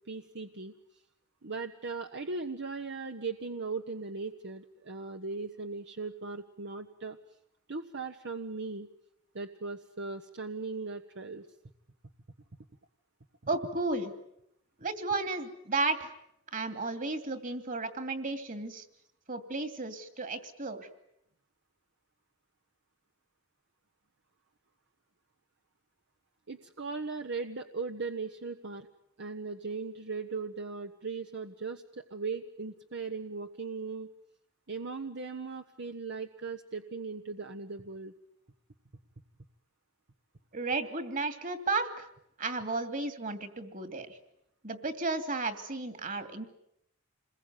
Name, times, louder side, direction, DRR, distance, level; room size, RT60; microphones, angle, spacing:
voice 1, 0.1-0.7 1.4-7.2 7.7-8.9 9.3-11.5 26.5-28.9 29.2-34.1 34.7-38.1, right 4 dB, 60° right, 5 dB, 1.3 m, -38 dB
voice 2, 13.5-14.1 14.8-16.1 16.5-18.8 19.3-20.9 40.5-42.1 42.4-44.2 44.6-46.4, right 3 dB, 40° right, 9 dB, 2.7 m, -33 dB
28.0 x 21.5 x 9.4 m, 0.76 s
head